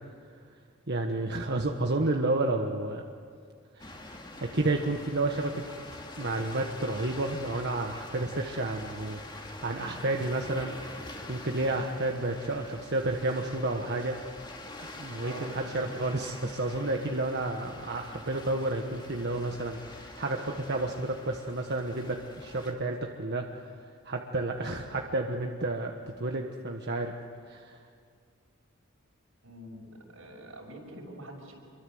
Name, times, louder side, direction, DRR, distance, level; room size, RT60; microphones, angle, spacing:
voice 1, 0.9-3.0 3.7-4.0 4.4-5.6 6.2-14.2 15.0-23.7 24.0-27.1 27.5-27.8, right 2 dB, 55° right, 3 dB, 1.3 m, -31 dB
sound 1, 3.8-22.7, left 2 dB, 25° left, 2.4 m, -45 dB
voice 2, 15.2-16.0 29.4-31.5, right 1 dB, 80° right, 0 dB, 6.5 m, -45 dB
28.0 x 23.0 x 7.9 m, 2.1 s
head